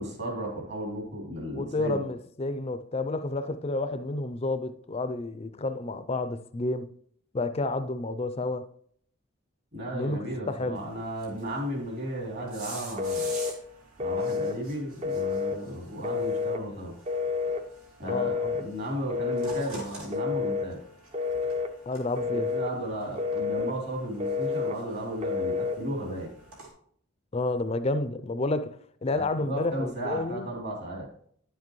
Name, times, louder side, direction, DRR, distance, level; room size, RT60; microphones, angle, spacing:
voice 1, 0.0-2.1 9.7-13.3 14.0-16.9 18.0-20.8 22.3-26.3 29.1-31.1, right 1 dB, 55° right, 3.1 m, -34 dB
voice 2, 1.5-6.9 7.3-8.7 9.9-10.2 10.5-10.8 18.0-18.6 21.9-22.5 27.3-30.5, left 2 dB, 30° left, 0.4 m, -30 dB
sound 1, 10.8-26.7, right 2 dB, 85° right, 2.7 m, -48 dB
Telephone, 13.0-13.6 14.0-14.6 15.0-15.6 16.0-16.6 17.1-17.6 18.1-18.7 19.1-19.7 20.1-20.7 21.1-21.7 22.2-22.7 23.2-23.8 24.2-24.8 25.2-25.8, left 4 dB, 30° right, 0.6 m, -29 dB
10.0 x 7.4 x 3.1 m
head